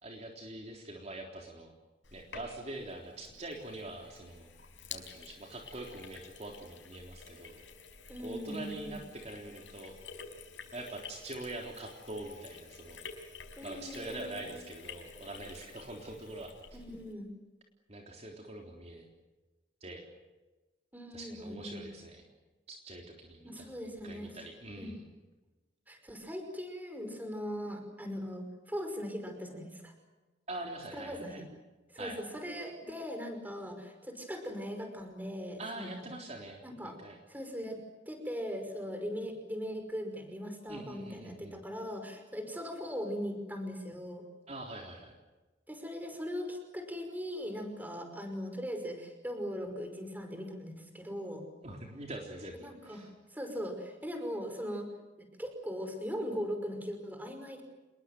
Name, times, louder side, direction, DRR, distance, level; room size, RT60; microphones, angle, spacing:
voice 1, 0.0-1.7 2.1-4.5 4.9-7.6 8.2-9.9 10.7-13.0 13.6-16.5 17.9-19.1 19.8-20.0 21.1-22.2 22.7-23.7 24.0-25.0 30.5-31.4 32.0-32.2 35.6-36.6 37.0-37.2 40.7-41.5 44.5-45.1 51.6-53.1, right 1 dB, 35° right, 1 dB, 3.6 m, -44 dB
Sink (filling or washing), 2.0-17.1, left 5 dB, 80° left, 5.2 m, -50 dB
voice 2, 8.1-9.0 13.6-14.6 16.7-17.3 20.9-21.8 23.4-24.3 24.8-25.0 25.9-29.9 30.9-31.4 31.9-36.1 36.6-37.0 37.3-44.2 45.7-51.4 52.6-54.9 55.4-57.6, equal, 10° right, 6 dB, 5.5 m, -40 dB
28.5 x 21.5 x 7.8 m, 1.2 s
head